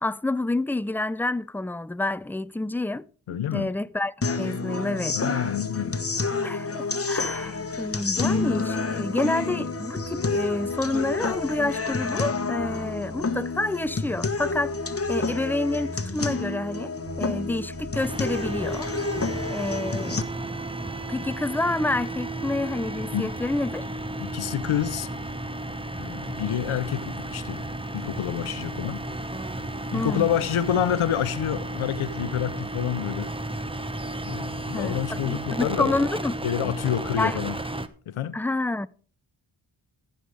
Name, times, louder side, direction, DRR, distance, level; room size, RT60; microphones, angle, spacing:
voice 1, 0.0-3.1 3.5-5.2 6.4-14.8 15.1-18.9 19.5-20.2 20.6-23.8 29.9-30.3 34.7-36.4 36.6-36.7 37.2-37.4 38.3-38.9, left 2 dB, 5° left, 0.4 m, -28 dB
voice 2, 3.3-3.7 5.1-6.0 23.1-23.3 24.2-25.1 26.0-27.7 27.9-29.0 29.9-33.3 34.3-36.1 36.4-37.6 38.1-38.4, left 10 dB, 75° left, 0.9 m, -28 dB
sound 1, 4.2-20.2, left 4 dB, 30° left, 1.2 m, -29 dB
sound 2, 7.2-19.5, right 1 dB, 55° right, 3.1 m, -44 dB
sound 3, 17.9-37.9, right 1 dB, 10° right, 0.9 m, -33 dB
15.0 x 5.7 x 4.9 m
cardioid pair, 45°, 49 cm